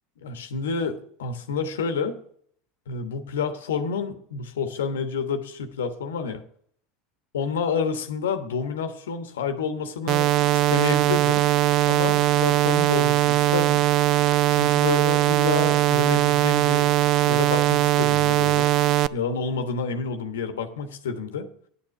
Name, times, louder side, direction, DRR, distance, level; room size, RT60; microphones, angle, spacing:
voice 1, 0.2-2.2 2.9-6.4 7.3-10.3 10.7-11.4 11.9-13.8 14.5-16.9 17.3-18.7 19.1-21.5, left 5 dB, 80° left, 8 dB, 1.2 m, -29 dB
sound 1, 10.1-19.1, right 15 dB, 50° right, 0.4 m, -20 dB
10.5 x 7.2 x 5.8 m, 0.62 s
hypercardioid pair, 85°, 0 cm